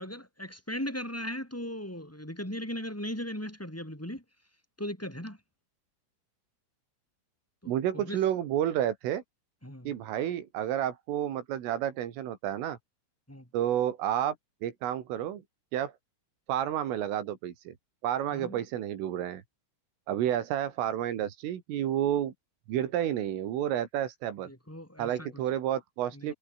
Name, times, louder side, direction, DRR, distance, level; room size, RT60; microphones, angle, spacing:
voice 1, 0.0-4.2 4.8-5.4 7.6-8.2 9.6-9.9 13.3-13.5 18.3-18.6 24.4-25.3 26.1-26.3, left 1 dB, 5° left, 6.4 m, -38 dB
voice 2, 7.7-9.2 9.9-12.8 13.5-14.4 14.6-15.4 15.7-15.9 16.5-17.7 18.0-19.4 20.1-22.3 22.7-24.5 25.0-26.3, right 11 dB, 75° right, 4.9 m, -30 dB
omnidirectional pair, 5.8 m